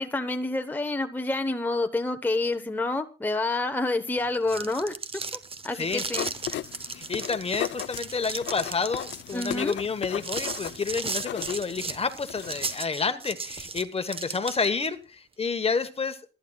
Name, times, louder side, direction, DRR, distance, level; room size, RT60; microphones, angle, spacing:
voice 1, 0.0-4.9 5.6-6.3 9.3-9.7, left 2 dB, 10° left, 6 dB, 1.0 m, -28 dB
sound 1, 4.2-14.9, right 4 dB, 30° right, 1.1 m, -36 dB
voice 2, 5.7-6.0 6.9-16.2, left 5 dB, 30° left, 10 dB, 1.2 m, -29 dB
sound 2, 5.8-12.8, left 12 dB, 65° left, 0.6 m, -37 dB
27.5 x 10.5 x 2.3 m, 0.32 s
cardioid pair, 90°, 20 cm